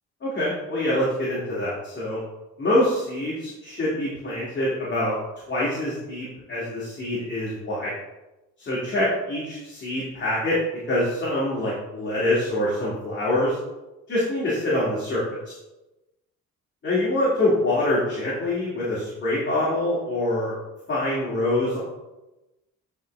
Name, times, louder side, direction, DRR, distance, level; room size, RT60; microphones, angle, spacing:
voice 1, 0.2-2.2 2.6-5.1 5.5-7.9 8.6-10.6 10.9-13.6 14.1-15.6 16.8-20.5 20.9-21.8, left 1 dB, 35° left, -8 dB, 2.1 m, -25 dB
9.0 x 3.8 x 3.2 m, 1.0 s
cardioid pair, 90°, 30 cm